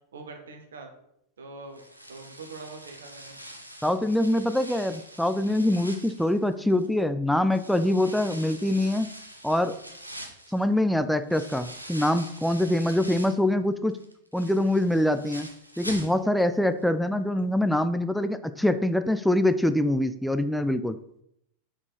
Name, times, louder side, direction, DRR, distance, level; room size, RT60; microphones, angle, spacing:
voice 1, 0.1-0.9 1.4-1.8 2.1-3.4, right 3 dB, 65° right, 4 dB, 1.1 m, -43 dB
sound 1, 1.7-7.0 7.5-13.5 13.9-16.5 16.8-16.9 17.4-17.5, right 1 dB, 90° right, 0.8 m, -44 dB
voice 2, 3.8-9.1 9.4-9.8 10.5-14.0 14.3-15.5 15.8-21.0, left 1 dB, ahead, 10 dB, 0.3 m, -24 dB
4.7 x 4.4 x 5.0 m, 0.76 s
figure-of-eight pair, 90°, 0 cm